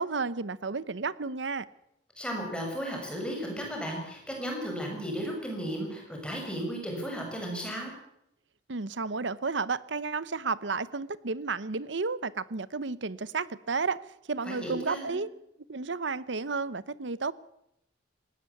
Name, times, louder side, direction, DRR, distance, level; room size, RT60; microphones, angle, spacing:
voice 1, 0.0-1.7 8.7-14.0 14.3-15.3 15.7-17.3, right 4 dB, 70° right, 18 dB, 0.8 m, -32 dB
voice 2, 2.2-7.9 14.4-15.2, equal, 5° left, 1 dB, 6.6 m, -35 dB
19.0 x 18.0 x 8.5 m, 0.79 s
head